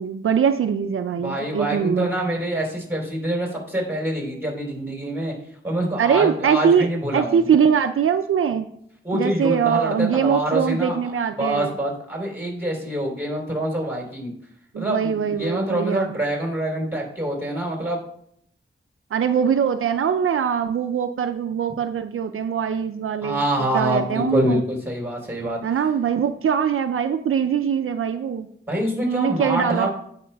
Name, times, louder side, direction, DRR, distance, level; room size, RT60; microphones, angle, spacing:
voice 1, 0.0-2.1 6.0-6.9 7.1-8.7 9.1-11.7 14.7-16.1 19.1-23.4 23.7-24.6 25.6-28.5 29.0-29.9, right 7 dB, 80° right, 8 dB, 0.4 m, -22 dB
voice 2, 1.1-5.3 5.6-7.5 9.0-11.0 11.4-14.3 14.7-18.0 23.2-25.6 28.7-29.9, right 1 dB, 10° right, -1 dB, 3.6 m, -25 dB
16.0 x 5.6 x 2.3 m, 0.68 s
wide cardioid pair, 90°, 21 cm